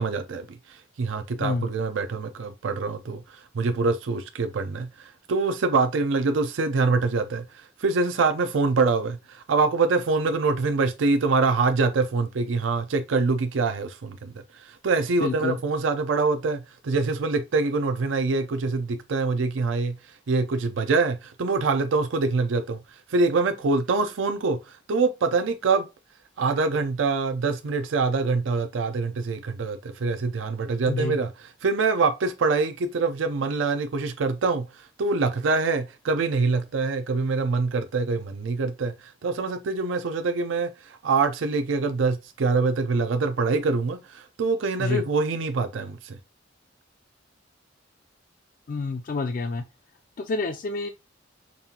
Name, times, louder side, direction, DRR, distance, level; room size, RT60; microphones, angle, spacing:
voice 1, 0.0-25.9 26.4-46.2, right 4 dB, 85° right, 0.5 m, -25 dB
voice 2, 15.2-15.6 30.9-31.2 44.8-45.0 48.7-49.6 50.2-50.9, left 3 dB, 45° left, 0.4 m, -28 dB
5.3 x 2.5 x 2.7 m
head